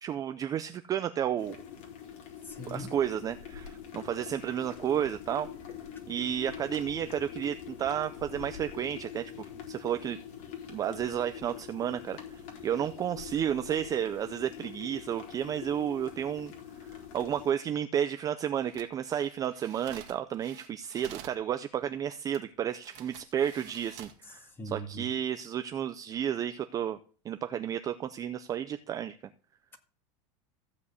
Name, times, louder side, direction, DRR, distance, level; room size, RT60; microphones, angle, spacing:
voice 1, 0.0-1.6 2.7-5.5 6.1-10.2 10.7-16.5 16.9-27.0 27.2-29.2, right 9 dB, 20° right, 0.5 m, -32 dB
sound 1, 1.4-17.5, left 8 dB, 55° left, 4.1 m, -45 dB
voice 2, 2.4-2.9 4.2-4.3 24.3-25.1, right 1 dB, 10° left, 1.8 m, -41 dB
sound 2, 18.6-21.4 22.3-22.4 22.8-24.2 24.8-25.0, right 11 dB, 45° right, 1.8 m, -49 dB
15.0 x 5.2 x 8.2 m
supercardioid pair, 160°, 17 cm